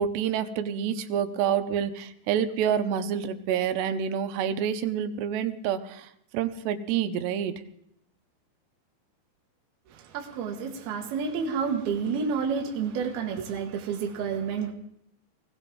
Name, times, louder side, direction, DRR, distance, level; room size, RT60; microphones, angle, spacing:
voice 1, 0.0-7.6, right 8 dB, 90° right, 3.0 m, -28 dB
voice 2, 9.9-14.7, right 6 dB, 70° right, 3.2 m, -30 dB
21.0 x 17.5 x 3.8 m
omnidirectional pair, 4.8 m